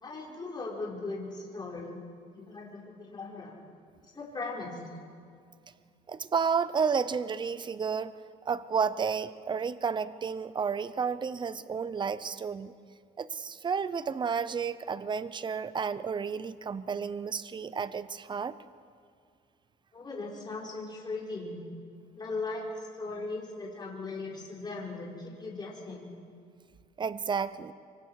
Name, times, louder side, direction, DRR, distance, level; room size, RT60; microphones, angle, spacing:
voice 1, 0.0-2.0 2.3-3.5 4.1-4.8 19.9-21.6 22.2-26.1, left 3 dB, 25° left, -4 dB, 4.9 m, -38 dB
voice 2, 6.1-8.2 8.5-12.7 13.2-18.6 27.0-27.7, right 6 dB, 25° right, 15 dB, 0.8 m, -31 dB
25.5 x 24.0 x 4.9 m, 2.3 s
cardioid pair, 110°, 17 cm